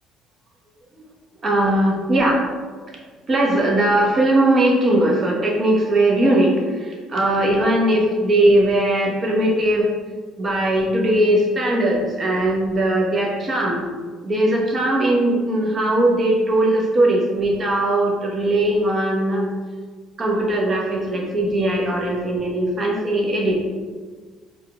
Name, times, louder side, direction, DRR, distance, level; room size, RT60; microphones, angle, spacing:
voice 1, 1.4-2.4 3.3-9.9 10.4-13.8 14.2-19.5 20.2-23.6, right 1 dB, 35° right, -2 dB, 1.0 m, -19 dB
4.4 x 2.5 x 3.4 m, 1.5 s
hypercardioid pair, 55°, 0 cm